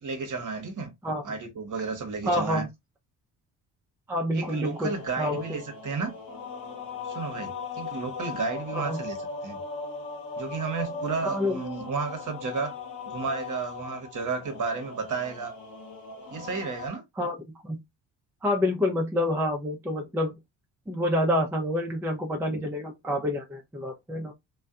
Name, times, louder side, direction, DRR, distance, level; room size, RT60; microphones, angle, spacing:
voice 1, 0.0-0.9 1.2-2.7 4.3-6.1 7.0-9.2 9.4-9.6 10.4-12.7 13.0-15.5 16.3-17.0, right 4 dB, 40° right, 1.0 m, -32 dB
voice 2, 2.3-2.7 4.1-5.6 8.7-9.0 11.2-11.6 17.2-17.4 17.6-17.8 18.4-20.4 20.9-24.3, left 1 dB, 5° right, 0.5 m, -28 dB
sound 1, 4.3-16.9, left 4 dB, 50° left, 1.2 m, -39 dB
2.5 x 2.2 x 2.3 m
hypercardioid pair, 55°, 46 cm